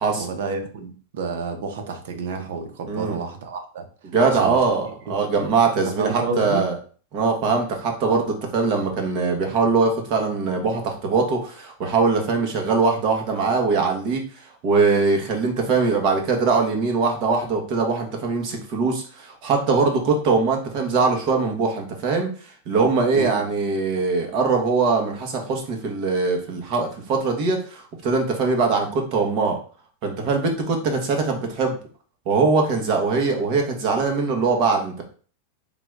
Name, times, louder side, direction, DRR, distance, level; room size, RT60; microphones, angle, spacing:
voice 1, 0.2-3.9 4.3-4.6 6.0-6.7 23.1-23.4, right 4 dB, 70° right, 6 dB, 0.9 m, -30 dB
voice 2, 2.9-3.2 4.0-6.8 7.1-14.2 14.6-22.3 22.7-29.6 30.0-31.8 32.3-35.0, right 4 dB, 40° right, 2 dB, 1.2 m, -22 dB
3.8 x 2.4 x 4.6 m, 0.41 s
supercardioid pair, 150°, 0 cm